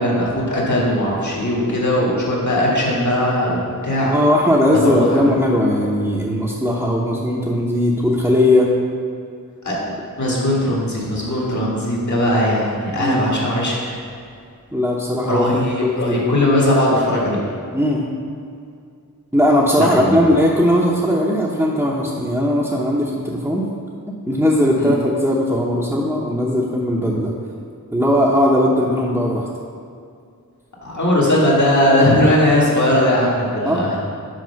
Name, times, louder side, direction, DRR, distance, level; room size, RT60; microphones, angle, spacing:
voice 1, 0.0-4.1 4.7-5.3 9.6-9.8 10.2-14.0 15.3-17.4 19.8-20.2 24.8-25.0 30.8-34.0, left 1 dB, 55° left, -4 dB, 1.9 m, -19 dB
voice 2, 4.1-8.7 12.9-13.2 14.7-16.3 17.7-18.0 19.3-23.6 24.3-27.3 27.9-29.5 33.6-33.9, left 1 dB, 5° right, -5 dB, 1.0 m, -18 dB
6.3 x 4.7 x 5.9 m, 2.3 s
wide cardioid pair, 45°, 34 cm